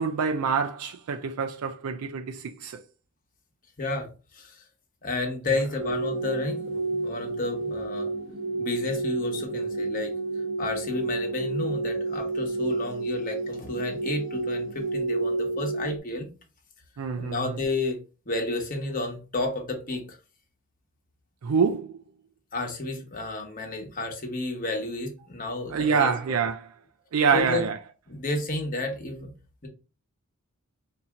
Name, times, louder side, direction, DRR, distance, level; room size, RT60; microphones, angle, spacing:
voice 1, 0.0-2.8 17.0-17.6 21.4-22.0 25.7-26.7 27.1-27.8, right 6 dB, 75° right, 0.4 m, -26 dB
voice 2, 3.8-4.1 4.3-4.6 5.0-8.1 8.6-10.1 10.6-16.3 17.2-18.0 18.3-20.2 22.5-26.1 27.3-27.6 28.1-29.3, left 2 dB, 40° left, 1.1 m, -31 dB
sound 1, 5.8-16.0, right 2 dB, 55° right, 1.1 m, -30 dB
4.3 x 2.7 x 3.6 m
head